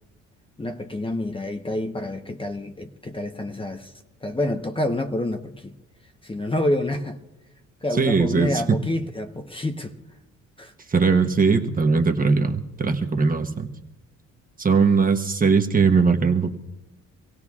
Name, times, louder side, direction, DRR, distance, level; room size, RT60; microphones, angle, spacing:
voice 1, 0.6-3.9 4.2-5.8 6.2-7.2 7.8-10.0 10.6-10.7, left 1 dB, 15° left, 1.0 m, -28 dB
voice 2, 8.0-8.8 10.9-13.7 14.6-16.6, right 5 dB, 30° right, 1.2 m, -20 dB
25.5 x 16.5 x 2.4 m
cardioid pair, 90°, 30 cm